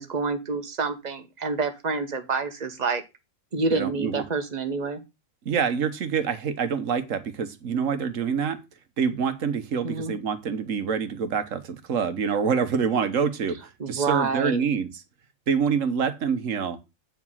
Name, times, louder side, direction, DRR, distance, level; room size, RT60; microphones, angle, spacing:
voice 1, 0.0-3.0 3.5-5.0 9.8-10.1 13.8-14.6, right 4 dB, 30° right, 1.2 m, -28 dB
voice 2, 3.7-4.2 5.4-8.6 9.0-15.0 15.5-16.8, right 6 dB, 65° right, 1.4 m, -26 dB
8.8 x 4.9 x 5.6 m
omnidirectional pair, 1.5 m